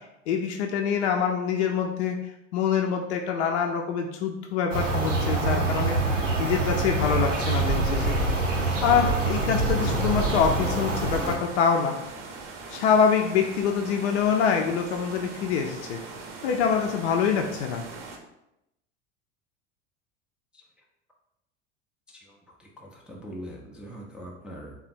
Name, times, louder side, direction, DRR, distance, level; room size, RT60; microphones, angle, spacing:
voice 1, 0.3-2.2 2.5-6.0 6.4-8.2 8.8-12.0 12.7-16.0 16.4-17.8, left 6 dB, 65° left, 2 dB, 0.5 m, -25 dB
sound 1, 4.7-11.4, right 3 dB, 85° right, 0.8 m, -25 dB
sound 2, 9.7-18.2, right 4 dB, 45° right, 0.7 m, -41 dB
voice 2, 22.1-24.8, equal, 5° right, -2 dB, 0.4 m, -42 dB
3.4 x 2.1 x 4.1 m, 0.86 s
hypercardioid pair, 80°, 36 cm